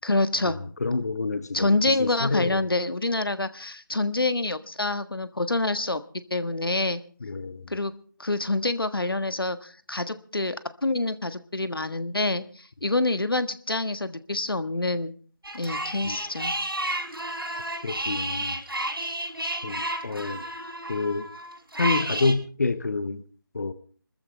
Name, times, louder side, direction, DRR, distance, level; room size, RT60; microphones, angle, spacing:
voice 1, 0.0-0.6 1.5-6.0 6.3-7.0 7.7-7.9 8.2-10.6 10.8-15.1 15.5-16.5, left 2 dB, 85° left, 10 dB, 1.5 m, -26 dB
voice 2, 0.8-1.7 2.0-2.6 7.2-7.6 16.0-16.2 17.8-18.6 19.6-20.4 20.9-21.3 21.8-23.2 23.5-23.7, left 3 dB, 45° left, 12 dB, 1.1 m, -28 dB
sound 1, 15.4-22.3, right 1 dB, 90° right, 6.7 m, -31 dB
25.5 x 14.0 x 3.3 m, 0.43 s
figure-of-eight pair, 165°, 12 cm